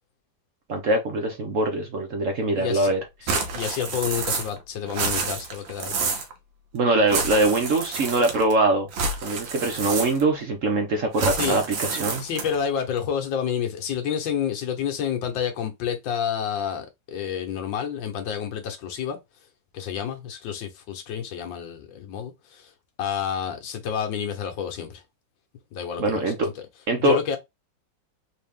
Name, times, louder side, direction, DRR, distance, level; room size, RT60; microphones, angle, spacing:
voice 1, 0.7-3.0 6.7-8.9 9.2-12.2 26.0-26.5 26.9-27.2, right 2 dB, 55° right, 0.9 m, -23 dB
voice 2, 2.4-2.9 3.2-5.9 11.3-11.6 12.2-19.2 19.7-22.7 23.0-25.0 25.7-26.6 27.0-27.4, left 8 dB, 80° left, 1.6 m, -29 dB
sound 1, 3.3-4.6 4.9-6.3 7.1-8.5 8.9-10.4 11.1-12.6, right 4 dB, 85° right, 1.6 m, -29 dB
4.0 x 2.8 x 3.5 m
omnidirectional pair, 2.0 m